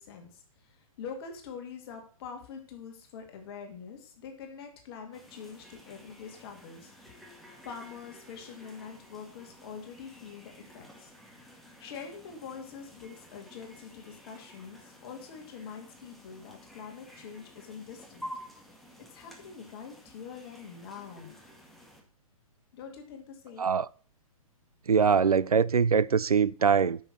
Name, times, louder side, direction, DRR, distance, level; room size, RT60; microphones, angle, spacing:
voice 1, 0.0-6.9 7.3-7.4 7.6-11.1 11.8-18.3 19.1-21.4 22.7-23.7, left 6 dB, 40° left, 2.4 m, -45 dB
sound 1, 5.1-22.0, equal, ahead, 1.8 m, -51 dB
voice 2, 24.9-27.0, right 6 dB, 85° right, 0.5 m, -23 dB
9.2 x 6.3 x 6.4 m
figure-of-eight pair, 125°, 19 cm